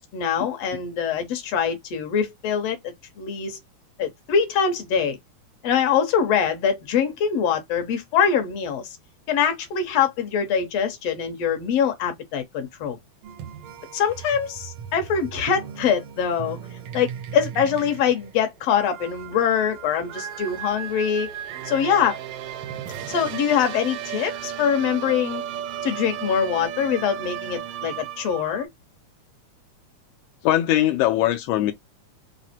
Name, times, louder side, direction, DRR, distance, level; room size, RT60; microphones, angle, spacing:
voice 1, 0.1-2.8 3.2-3.6 4.0-5.2 5.6-9.0 9.3-13.0 13.9-16.6 16.9-21.4 21.7-22.2 23.1-25.4 25.8-28.7, left 7 dB, 65° left, 1.8 m, -23 dB
sound 1, 13.2-28.7, right 9 dB, 80° right, 1.3 m, -35 dB
voice 2, 30.4-31.7, left 13 dB, 80° left, 1.5 m, -20 dB
5.0 x 2.1 x 4.2 m
omnidirectional pair, 3.6 m